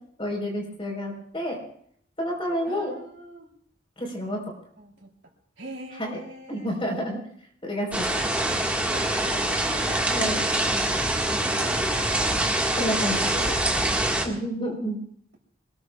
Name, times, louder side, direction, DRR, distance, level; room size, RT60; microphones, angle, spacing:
voice 1, 0.2-1.6 2.2-2.9 4.0-4.4 6.0-6.2 6.5-7.2 7.6-8.3 10.1-10.4 12.8-13.5 14.2-15.0, equal, 30° left, 0 dB, 4.5 m, -29 dB
voice 2, 2.7-3.5 4.8-5.1 5.6-6.7 8.9-10.7 11.5-14.0, right 1 dB, 75° right, 1 dB, 3.3 m, -42 dB
sound 1, 7.9-14.3, right 1 dB, 5° right, 1.8 m, -25 dB
25.0 x 20.0 x 2.4 m, 0.64 s
head